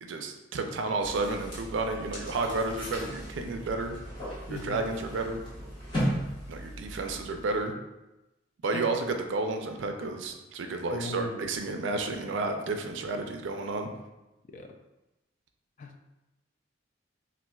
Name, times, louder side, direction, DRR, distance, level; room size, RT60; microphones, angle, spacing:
voice 1, 0.0-4.0 4.5-5.4 6.5-7.7 8.6-13.9, right 3 dB, 70° right, 5 dB, 0.4 m, -31 dB
sound 1, 1.0-7.6, equal, 30° left, 1.2 m, -37 dB
voice 2, 4.5-4.9 8.7-8.9 10.9-11.5 14.5-14.7 15.8-16.1, left 2 dB, 45° left, 4 dB, 0.3 m, -38 dB
4.1 x 2.5 x 2.3 m, 0.99 s
head